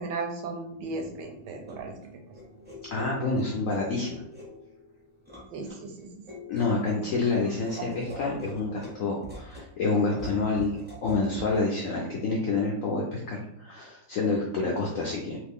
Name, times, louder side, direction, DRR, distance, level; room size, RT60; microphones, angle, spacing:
voice 1, 0.0-1.9 5.5-6.1 7.8-7.9, right 3 dB, 75° right, 2 dB, 1.1 m, -35 dB
sound 1, 0.8-11.7, left 1 dB, 10° right, 0.5 m, -46 dB
voice 2, 2.9-4.2 6.5-10.7 11.0-15.4, left 3 dB, 75° left, -2 dB, 0.7 m, -28 dB
3.0 x 2.5 x 3.5 m, 0.80 s
omnidirectional pair, 2.0 m